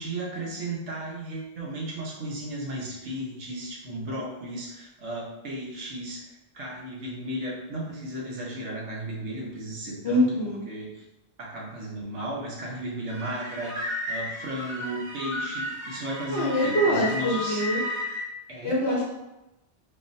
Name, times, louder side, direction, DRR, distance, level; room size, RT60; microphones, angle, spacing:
voice 1, 0.0-6.2 6.5-10.2 10.7-11.0 11.4-17.6 18.5-19.1, right 1 dB, 85° right, -3 dB, 1.1 m, -35 dB
voice 2, 10.0-10.6 16.3-17.8 18.6-19.1, equal, 65° left, -5 dB, 0.9 m, -24 dB
sound 1, 13.1-18.2, left 1 dB, 60° right, 1.6 m, -33 dB
3.7 x 2.0 x 2.5 m, 0.96 s
omnidirectional pair, 1.2 m